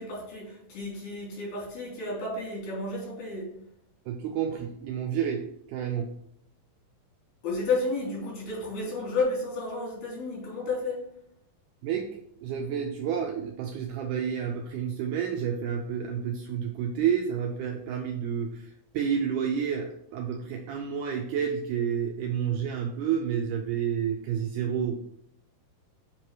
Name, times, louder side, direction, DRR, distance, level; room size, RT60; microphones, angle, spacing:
voice 1, 0.0-3.5 7.4-11.0, left 3 dB, 90° left, -5 dB, 4.5 m, -32 dB
voice 2, 4.1-5.4 5.7-6.1 8.8-8.9 11.8-12.1 12.4-25.0, right 8 dB, 80° right, 2 dB, 1.8 m, -30 dB
7.5 x 3.0 x 4.6 m, 0.73 s
omnidirectional pair, 4.1 m